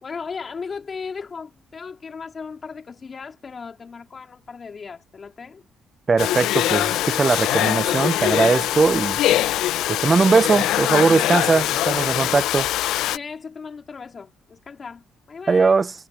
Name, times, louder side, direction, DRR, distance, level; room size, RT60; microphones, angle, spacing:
voice 1, 0.0-5.6 13.1-15.8, left 5 dB, 40° left, 3.0 m, -36 dB
voice 2, 6.1-9.2 9.9-12.7 15.5-15.9, right 4 dB, 30° right, 0.5 m, -20 dB
Domestic sounds home sounds, 6.2-13.2, left 14 dB, 90° left, 0.4 m, -22 dB
cardioid pair, 90°, 0 cm